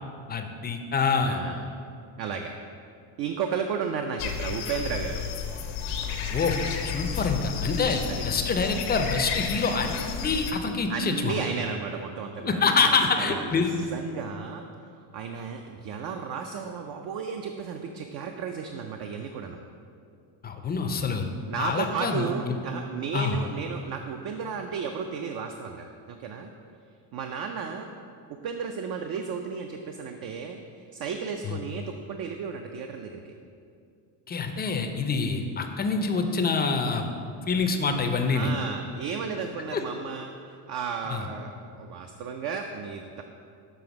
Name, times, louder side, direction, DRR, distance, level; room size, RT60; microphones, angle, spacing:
voice 1, 0.3-1.4 6.3-6.6 6.8-11.4 12.4-13.7 20.4-21.2 21.6-22.6 23.1-23.4 31.4-31.6 34.3-37.1 37.5-38.5 39.7-39.8 41.1-41.3, left 4 dB, 20° left, 5 dB, 0.4 m, -26 dB
voice 2, 1.2-1.7 2.2-2.5 3.2-5.2 8.1-8.3 10.9-14.6 15.1-19.6 21.5-26.5 27.1-27.9 28.3-33.3 38.2-40.4 40.7-43.2, right 6 dB, 50° right, 4 dB, 0.5 m, -34 dB
sound 1, 4.2-10.5, left 7 dB, 85° left, 0.9 m, -32 dB
7.0 x 3.4 x 5.9 m, 2.5 s
cardioid pair, 110°, 48 cm